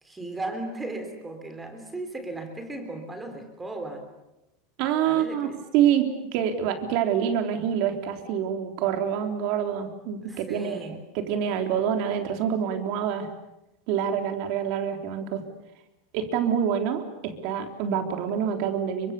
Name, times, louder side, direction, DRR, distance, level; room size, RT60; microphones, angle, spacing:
voice 1, 0.0-4.0 5.1-5.6 10.2-11.0, right 2 dB, 10° right, 6 dB, 3.4 m, -36 dB
voice 2, 4.8-5.5 5.7-13.3 13.9-15.4 16.1-19.1, right 9 dB, 50° right, 5 dB, 3.7 m, -26 dB
30.0 x 25.0 x 7.0 m, 0.91 s
supercardioid pair, 160°, 0 cm